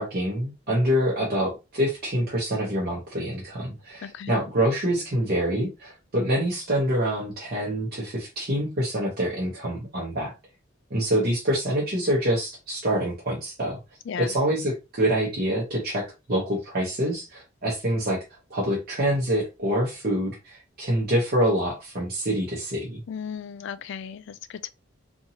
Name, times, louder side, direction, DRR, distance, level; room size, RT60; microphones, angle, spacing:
voice 1, 0.0-10.3 10.9-13.8 14.2-18.2 18.5-23.0, right 1 dB, 50° right, 0.9 m, -26 dB
voice 2, 4.0-4.3 14.1-14.3 23.1-24.7, left 7 dB, 65° left, 0.3 m, -35 dB
2.7 x 2.6 x 2.7 m
head